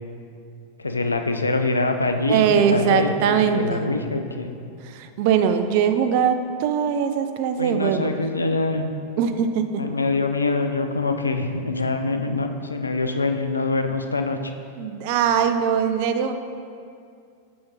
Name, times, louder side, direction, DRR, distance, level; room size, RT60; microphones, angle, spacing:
voice 1, 0.8-4.5 7.6-8.8 9.8-14.5, left 3 dB, 80° left, 6 dB, 0.4 m, -24 dB
voice 2, 2.3-3.9 4.8-8.1 9.2-9.8 14.8-16.3, right 7 dB, 50° right, 8 dB, 0.4 m, -21 dB
5.7 x 5.1 x 4.1 m, 2.4 s
figure-of-eight pair, 90°, 0 cm